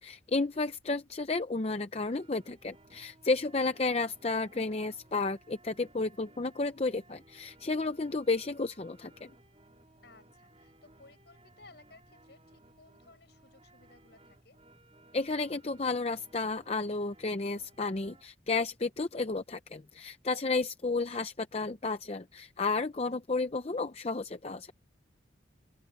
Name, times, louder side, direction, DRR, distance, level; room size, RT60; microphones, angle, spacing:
voice 1, 0.0-9.3 15.1-24.7, left 3 dB, 35° left, 0.6 m, -32 dB
sound 1, 1.9-18.2, right 2 dB, 30° right, 4.4 m, -60 dB
voice 2, 10.0-14.6, left 3 dB, 60° left, 6.2 m, -59 dB
open air
head